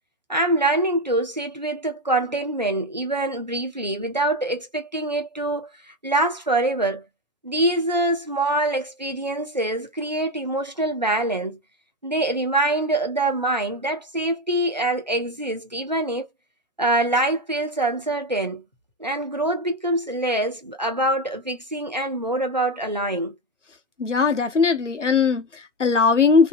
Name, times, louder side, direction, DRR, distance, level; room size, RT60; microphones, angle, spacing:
voice 1, 0.3-7.0 7.4-11.6 12.0-16.3 16.8-18.6 19.0-23.3, right 2 dB, 35° right, 0.5 m, -24 dB
voice 2, 24.0-26.5, left 5 dB, 65° left, 0.8 m, -19 dB
2.6 x 2.1 x 2.6 m
figure-of-eight pair, 155°, 40 cm